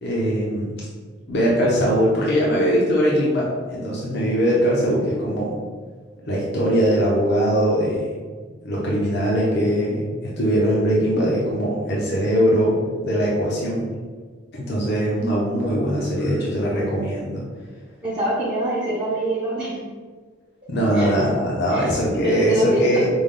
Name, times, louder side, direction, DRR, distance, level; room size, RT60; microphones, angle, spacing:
voice 1, 0.0-0.8 1.3-5.6 6.3-8.3 8.6-10.0 10.4-12.8 13.0-13.9 14.5-17.4 20.7-23.1, equal, 55° left, -5 dB, 0.7 m, -21 dB
voice 2, 18.0-19.8 20.9-21.1 21.7-21.9 22.2-22.8, right 1 dB, 30° right, -9 dB, 0.8 m, -25 dB
5.1 x 2.3 x 3.7 m, 1.5 s
head